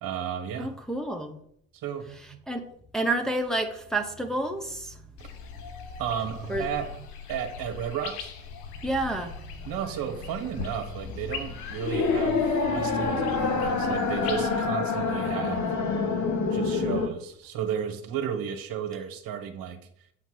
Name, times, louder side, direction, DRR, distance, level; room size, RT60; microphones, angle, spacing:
voice 1, 0.0-0.7 1.7-2.4 6.0-7.0 7.3-8.3 9.6-15.7 16.5-19.8, right 8 dB, 55° right, 7 dB, 1.4 m, -33 dB
voice 2, 0.6-1.4 2.5-2.7 2.9-5.0 6.5-6.7 8.8-9.6, right 2 dB, ahead, 2 dB, 1.1 m, -29 dB
sound 1, 5.2-14.6, left 6 dB, 70° left, 1.2 m, -41 dB
sound 2, 11.1-17.1, left 4 dB, 45° left, 1.4 m, -27 dB
8.1 x 4.5 x 6.2 m, 0.68 s
hypercardioid pair, 70°, 42 cm